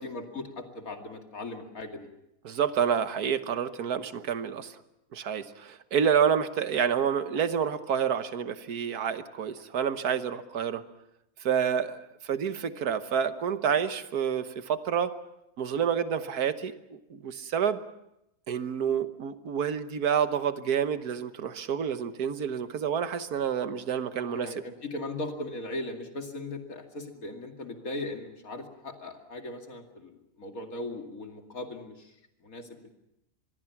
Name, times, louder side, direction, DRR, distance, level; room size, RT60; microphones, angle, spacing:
voice 1, 0.0-2.1 24.2-32.1 32.4-32.9, left 2 dB, 65° left, 4 dB, 2.8 m, -38 dB
voice 2, 2.4-4.7 5.1-10.8 11.4-15.2 15.6-17.8 18.5-24.5, right 7 dB, 85° right, 11 dB, 1.7 m, -28 dB
26.0 x 21.5 x 5.9 m, 0.84 s
omnidirectional pair, 1.6 m